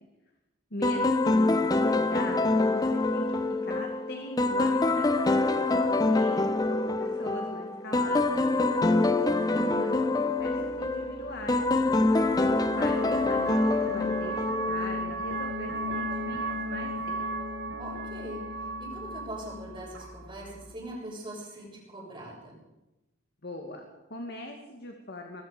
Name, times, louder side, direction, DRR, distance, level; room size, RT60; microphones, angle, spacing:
voice 1, 0.7-9.2 10.2-17.2 23.4-25.4, left 1 dB, 50° left, 3 dB, 2.2 m, -41 dB
sound 1, 0.8-15.0, left 2 dB, 20° left, 0.9 m, -25 dB
voice 2, 9.5-10.0 17.8-22.6, right 1 dB, 25° right, -3 dB, 7.3 m, -41 dB
sound 2, 10.4-20.7, right 1 dB, 65° right, 4.7 m, -35 dB
23.0 x 21.0 x 5.3 m, 1.0 s
head